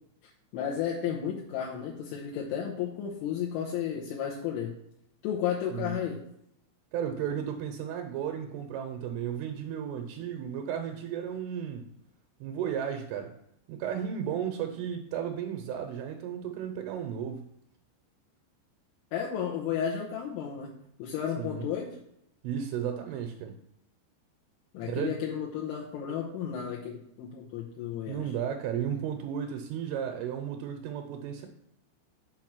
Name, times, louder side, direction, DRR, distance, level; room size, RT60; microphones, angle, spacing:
voice 1, 0.5-4.7 5.2-6.2 19.1-22.0 24.7-28.2, left 8 dB, 80° left, -2 dB, 3.1 m, -33 dB
voice 2, 6.9-11.9 12.4-13.3 13.7-17.5 21.4-21.7 22.4-23.5 24.8-25.2 28.1-31.5, right 8 dB, 80° right, 4 dB, 3.0 m, -34 dB
7.8 x 4.6 x 6.0 m, 0.76 s
omnidirectional pair, 5.9 m